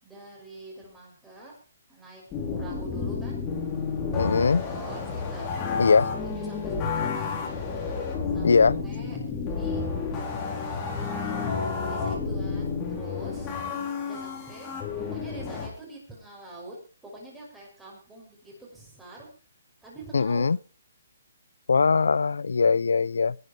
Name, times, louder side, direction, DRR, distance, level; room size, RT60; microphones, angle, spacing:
voice 1, 0.0-1.6 1.9-3.6 4.1-5.6 5.9-7.4 8.2-9.9 10.6-11.4 11.8-13.6 14.0-19.3 19.8-20.6, right 1 dB, 5° right, 5.9 m, -45 dB
sound 1, 2.3-15.7, left 5 dB, 15° left, 4.3 m, -31 dB
voice 2, 4.2-4.6 5.8-6.1 8.4-8.8 20.1-20.6 21.7-23.4, left 5 dB, 80° left, 0.6 m, -21 dB
19.5 x 9.8 x 4.9 m
hypercardioid pair, 165°, 0 cm